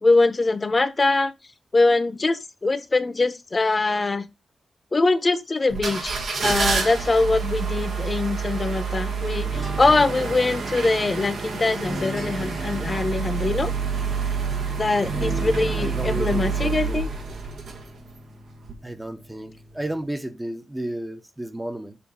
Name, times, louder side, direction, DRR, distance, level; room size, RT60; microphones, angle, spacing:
voice 1, 0.0-1.3 1.7-4.2 4.9-6.2 6.4-13.7 14.8-17.1, left 3 dB, 35° left, 0.8 m, -22 dB
sound 1, 5.7-18.2 18.6-18.7, right 5 dB, 80° right, 1.3 m, -28 dB
sound 2, 9.4-20.0, right 1 dB, 65° right, 3.6 m, -38 dB
voice 2, 15.8-17.0 18.8-22.0, right 1 dB, 10° right, 0.7 m, -32 dB
7.0 x 2.7 x 5.4 m
cardioid pair, 90°, 0 cm